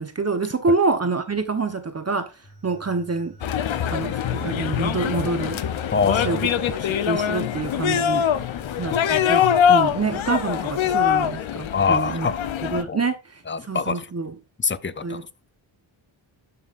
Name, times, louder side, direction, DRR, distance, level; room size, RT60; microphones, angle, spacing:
voice 1, 0.0-2.3 2.6-3.3 3.9-5.6 6.2-6.4 7.1-8.3 8.8-12.3 12.6-13.4 13.7-14.3 15.0-15.2, right 4 dB, 30° right, 1.0 m, -26 dB
sound 1, 2.4-10.2, right 2 dB, 45° left, 4.2 m, -47 dB
sound 2, 3.4-12.8, left 9 dB, 70° left, 0.8 m, -23 dB
voice 2, 5.9-6.5 8.8-9.0 11.7-12.4 12.9-13.0 13.5-14.1 14.6-15.3, left 5 dB, 25° left, 0.5 m, -25 dB
12.0 x 5.6 x 2.5 m
wide cardioid pair, 100°, 48 cm